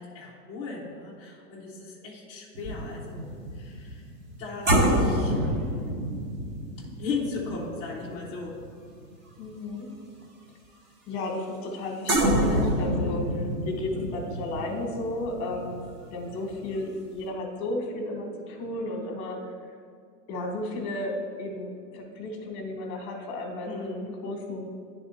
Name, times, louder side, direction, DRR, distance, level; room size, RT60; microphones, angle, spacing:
voice 1, 0.0-4.1 4.4-5.4 7.0-8.6 23.6-24.1, left 4 dB, 15° left, -7 dB, 0.4 m, -36 dB
sound 1, 2.6-9.1 9.5-9.7 12.1-16.7 17.0-17.2, equal, 20° right, 0.7 m, -28 dB
voice 2, 9.4-9.9 11.1-19.4 20.3-24.6, left 1 dB, 35° left, 2 dB, 1.1 m, -33 dB
9.1 x 3.6 x 4.2 m, 2.2 s
hypercardioid pair, 135°, 50 cm